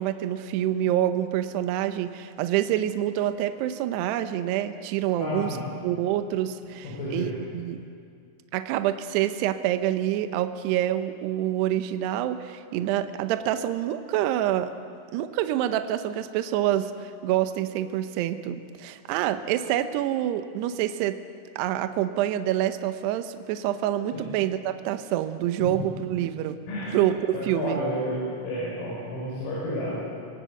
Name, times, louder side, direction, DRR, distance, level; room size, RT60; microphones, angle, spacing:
voice 1, 0.0-5.6 5.8-7.8 8.5-14.7 15.1-21.2 21.6-26.6 26.9-27.8, right 12 dB, 85° right, 9 dB, 2.4 m, -27 dB
voice 2, 5.1-5.7 6.8-7.3 24.1-24.3 25.6-25.7 26.7-26.9 27.3-30.1, left 1 dB, 85° left, -6 dB, 8.3 m, -31 dB
26.0 x 18.5 x 8.0 m, 2.3 s
omnidirectional pair, 6.0 m